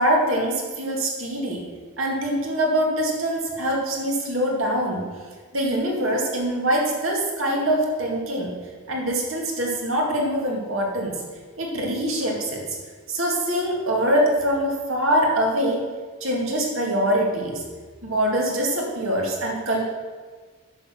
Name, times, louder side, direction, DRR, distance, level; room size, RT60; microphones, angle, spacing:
voice 1, 0.0-1.6 2.0-5.0 5.5-8.5 8.9-11.2 11.6-12.8 13.1-15.8 16.2-17.6 18.0-19.8, right 1 dB, 75° right, -1 dB, 2.2 m, -23 dB
9.7 x 6.2 x 6.1 m, 1.5 s
head